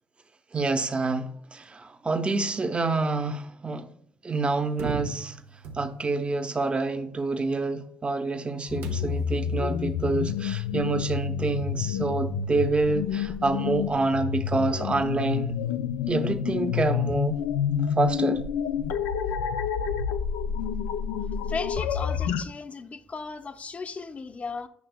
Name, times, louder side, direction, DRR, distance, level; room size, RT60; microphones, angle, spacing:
voice 1, 0.5-3.9 4.2-5.4 5.7-15.6 16.1-17.4 18.0-18.4, right 3 dB, 30° right, 0.8 m, -27 dB
sound 1, 4.8-6.3 8.8-9.4, right 5 dB, 75° right, 0.8 m, -38 dB
sound 2, 8.7-22.4, left 8 dB, 90° left, 0.4 m, -29 dB
voice 2, 21.5-24.7, left 4 dB, 35° left, 0.7 m, -35 dB
9.5 x 5.7 x 2.2 m
supercardioid pair, 65°, 4 cm